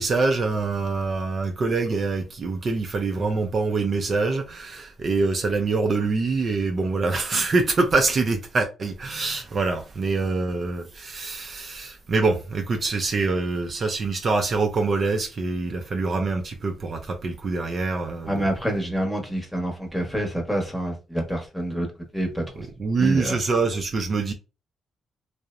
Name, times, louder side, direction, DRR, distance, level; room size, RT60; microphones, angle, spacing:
voice 1, 0.0-18.5 22.6-24.3, right 3 dB, 45° right, 0.4 m, -25 dB
voice 2, 18.3-22.7 23.0-23.4, right 1 dB, 5° left, 0.9 m, -27 dB
2.8 x 2.0 x 2.4 m
cardioid pair, 90°, 0 cm